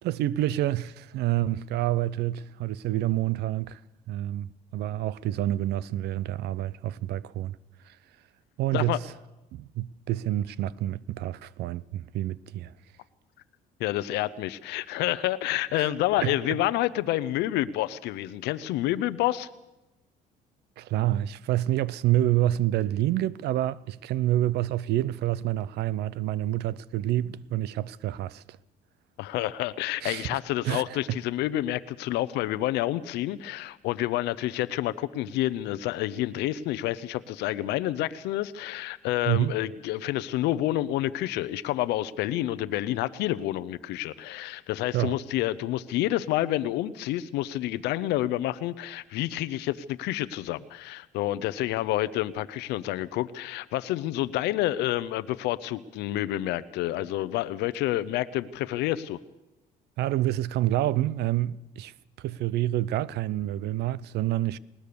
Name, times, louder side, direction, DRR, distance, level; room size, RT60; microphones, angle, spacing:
voice 1, 0.0-3.8 4.1-7.6 7.8-8.0 8.6-9.1 9.5-12.7 15.7-15.9 16.2-16.3 20.8-28.6 30.0-30.3 30.6-31.2 39.3-39.6 44.9-45.2 60.0-64.6, right 14 dB, 75° right, 0.6 m, -28 dB
voice 2, 13.8-19.5 29.2-59.2, left 14 dB, 85° left, 0.7 m, -29 dB
20.0 x 19.0 x 6.9 m
cardioid pair, 110°, 17 cm